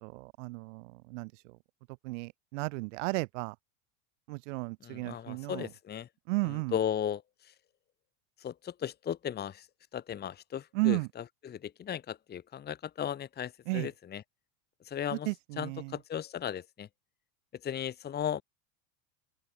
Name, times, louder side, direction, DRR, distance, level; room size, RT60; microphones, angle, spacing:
voice 1, 0.0-1.5 2.0-3.5 4.3-5.7 6.3-6.7 10.7-11.1 13.7-13.9 15.1-15.9, right 25 dB, 65° right, 1.7 m, -34 dB
voice 2, 4.8-6.1 6.5-7.5 8.4-9.7 9.9-14.2 14.8-15.3 15.6-16.9 17.6-18.4, left 9 dB, 25° left, 1.5 m, -36 dB
open air
supercardioid pair, 115°, 39 cm